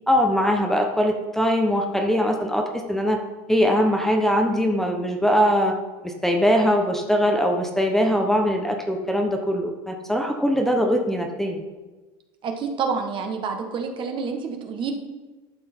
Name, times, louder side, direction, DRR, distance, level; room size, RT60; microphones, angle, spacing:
voice 1, 0.1-3.2 3.5-5.8 6.0-11.6, equal, 5° left, 2 dB, 1.0 m, -21 dB
voice 2, 12.4-14.9, right 5 dB, 40° right, 4 dB, 1.4 m, -28 dB
11.5 x 6.2 x 4.5 m, 1.2 s
supercardioid pair, 115°, 13 cm